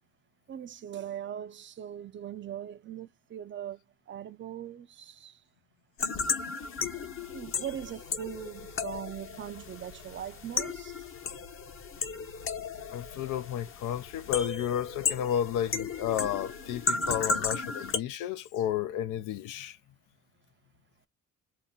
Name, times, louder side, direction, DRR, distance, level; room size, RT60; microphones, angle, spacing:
voice 1, 0.5-3.8 4.1-5.4 7.3-11.0 13.1-13.2 17.0-17.3, right 10 dB, 40° right, 0.4 m, -40 dB
sound 1, 6.0-18.0, left 5 dB, 45° left, 0.7 m, -34 dB
voice 2, 12.9-19.8, left 10 dB, 90° left, 0.5 m, -32 dB
2.8 x 2.1 x 3.6 m
cardioid pair, 90°, 30 cm